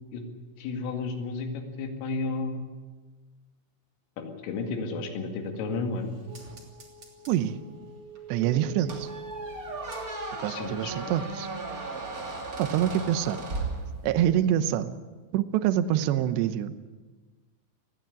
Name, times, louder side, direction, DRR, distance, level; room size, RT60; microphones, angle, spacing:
voice 1, 0.6-2.7 4.2-6.1 10.5-11.1, left 3 dB, 75° left, 5 dB, 4.7 m, -32 dB
sound 1, 5.4-10.5 10.8-10.9, right 3 dB, 30° right, 2.8 m, -45 dB
voice 2, 7.3-7.6 8.3-9.1 10.4-11.5 12.6-13.4 14.0-14.9 15.3-16.9, right 11 dB, 75° right, 11 dB, 2.7 m, -26 dB
Squeak, 8.9-14.4, right 3 dB, 55° right, 0.9 m, -36 dB
20.0 x 15.0 x 9.8 m, 1.3 s
omnidirectional pair, 5.9 m